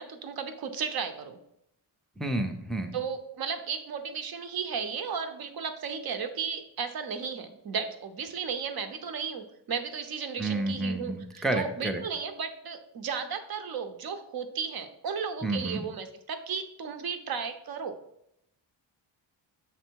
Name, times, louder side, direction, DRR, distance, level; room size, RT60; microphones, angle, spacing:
voice 1, 0.0-1.4 2.9-18.0, right 6 dB, 50° right, 7 dB, 0.7 m, -34 dB
voice 2, 2.2-3.0 10.4-12.0 15.4-15.9, right 2 dB, ahead, 5 dB, 0.5 m, -30 dB
6.9 x 3.3 x 4.5 m, 0.77 s
cardioid pair, 120°, 47 cm